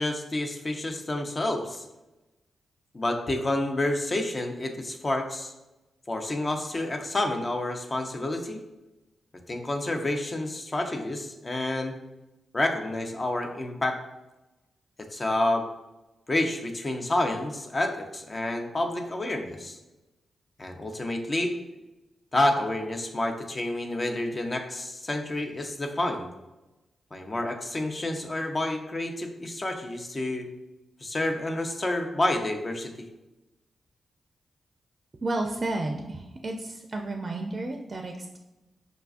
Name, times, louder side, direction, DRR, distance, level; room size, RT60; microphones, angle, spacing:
voice 1, 0.0-1.8 2.9-5.5 6.1-8.6 9.5-12.0 12.5-14.0 15.0-15.7 16.3-19.8 20.6-21.6 22.3-26.3 27.1-30.5 31.0-33.1, left 1 dB, 40° left, 4 dB, 0.5 m, -29 dB
voice 2, 35.2-38.4, right 2 dB, 45° right, 3 dB, 0.4 m, -32 dB
5.0 x 2.2 x 2.5 m, 1.0 s
supercardioid pair, 45°, 0 cm